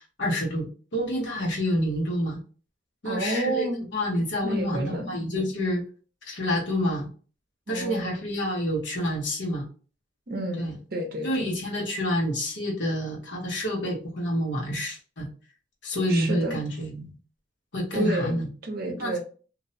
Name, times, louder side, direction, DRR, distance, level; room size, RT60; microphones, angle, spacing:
voice 1, 0.0-2.4 3.0-5.8 6.2-7.1 7.7-9.7 10.6-10.8 11.2-15.3 15.8-17.1 17.7-18.5 19.0-19.2, equal, 75° left, 1.0 m, -28 dB
voice 2, 3.0-3.8 4.4-5.2 7.7-8.1 10.3-11.5 16.1-16.6 17.9-18.4 18.6-19.2, right 1 dB, 55° right, 0.6 m, -30 dB
2.6 x 2.1 x 2.6 m
head